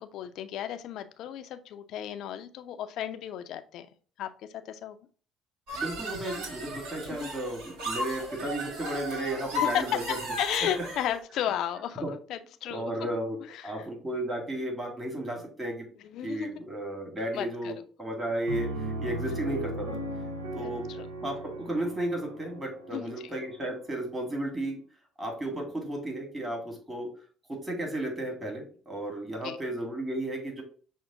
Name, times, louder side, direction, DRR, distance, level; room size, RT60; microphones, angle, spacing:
voice 1, 0.0-3.9 4.2-4.3 4.7-5.0 7.1-7.3 9.7-9.8 10.4-12.9 13.5-13.7 16.1-16.5 17.3-17.7 20.6-20.7 21.0-21.1 22.9-23.0 29.4-29.6, left 10 dB, 65° left, 9 dB, 0.5 m, -34 dB
voice 2, 5.7-10.0 10.6-10.9 12.0-12.1 12.7-13.4 13.6-15.9 16.2-20.0 20.5-20.9 21.2-24.8 25.2-27.1 27.5-30.6, right 1 dB, 20° right, 1 dB, 2.0 m, -34 dB
sound 1, 5.7-11.2, left 1 dB, 75° right, 1.4 m, -35 dB
Piano, 18.5-24.0, right 1 dB, 90° right, 0.7 m, -37 dB
6.1 x 2.1 x 3.7 m, 0.42 s
hypercardioid pair, 65°, 0 cm